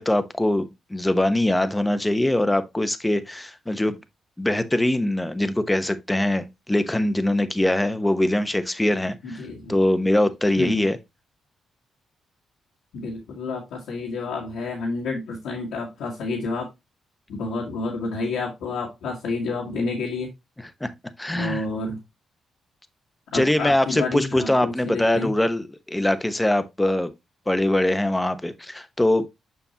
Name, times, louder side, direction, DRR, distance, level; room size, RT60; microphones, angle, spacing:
voice 1, 0.0-4.0 4.4-9.4 9.7-11.0 20.8-20.9 21.2-21.6 23.3-27.1 27.5-29.3, left 1 dB, 15° left, 1.0 m, -22 dB
voice 2, 9.2-9.7 10.6-10.8 12.9-16.7 17.3-20.3 21.3-22.0 23.3-25.3, left 3 dB, 80° left, 1.7 m, -29 dB
7.0 x 5.3 x 2.9 m
supercardioid pair, 55°, 0 cm